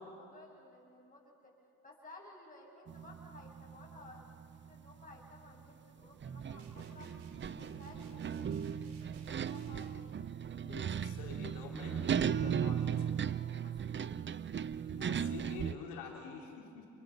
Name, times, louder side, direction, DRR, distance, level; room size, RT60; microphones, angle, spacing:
voice 1, 0.0-1.5 1.8-4.3 4.6-7.2 7.5-9.9 13.4-14.2, left 2 dB, 20° left, -1 dB, 7.3 m, -56 dB
sound 1, 2.9-5.7 6.2-15.7, right 8 dB, 30° right, 0.6 m, -37 dB
sound 2, 6.6-10.1, right 5 dB, 85° right, 2.8 m, -56 dB
voice 2, 10.6-13.2 14.9-16.9, left 6 dB, 85° left, 0 dB, 4.1 m, -48 dB
28.5 x 23.5 x 6.1 m, 2.6 s
supercardioid pair, 85°, 39 cm